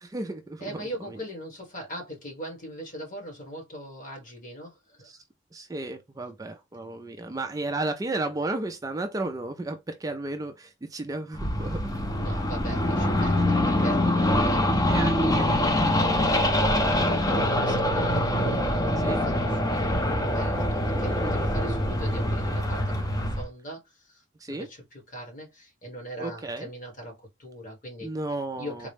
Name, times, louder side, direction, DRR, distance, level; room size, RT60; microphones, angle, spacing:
voice 1, 0.0-1.2 5.0-5.2 5.5-11.9 14.9-15.5 19.0-19.2 21.1-21.4 24.4-24.7 26.2-26.7 28.0-28.9, right 2 dB, 20° right, 0.3 m, -33 dB
voice 2, 0.6-5.1 12.2-14.8 15.1-15.3 15.6-28.1 28.5-28.9, equal, 45° left, 1.4 m, -41 dB
sound 1, 11.3-23.4, left 1 dB, 20° left, 0.7 m, -24 dB
3.8 x 2.1 x 3.2 m
head